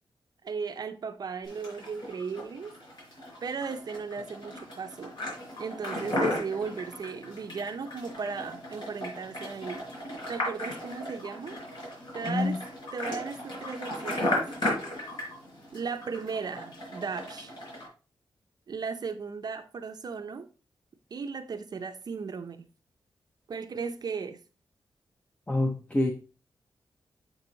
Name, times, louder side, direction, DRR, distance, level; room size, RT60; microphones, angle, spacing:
voice 1, 0.4-2.7 3.4-5.1 5.6-9.9 10.3-11.6 12.1-12.6 12.9-14.4 15.7-17.5 18.7-20.5 21.1-22.6 23.5-24.4, right 5 dB, 50° right, 0.6 m, -36 dB
sound 1, 1.4-17.9, left 1 dB, 60° left, 4.3 m, -36 dB
voice 2, 12.2-12.6 25.5-26.1, left 2 dB, 15° left, 0.6 m, -26 dB
7.6 x 5.9 x 3.9 m
wide cardioid pair, 170°, 9 cm